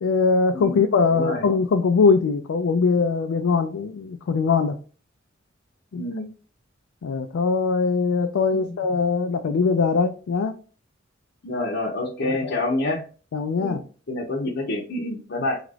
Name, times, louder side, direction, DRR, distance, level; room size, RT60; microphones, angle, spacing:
voice 1, 0.0-4.8 5.9-6.0 7.0-10.5 12.3-12.5 13.3-13.8, left 4 dB, 85° left, 6 dB, 0.4 m, -21 dB
voice 2, 0.5-0.9 1.1-1.5 5.9-6.3 8.5-8.8 11.4-13.0 13.6-13.8 14.1-15.6, left 2 dB, 60° left, -4 dB, 0.7 m, -27 dB
2.9 x 2.4 x 3.2 m, 0.38 s
head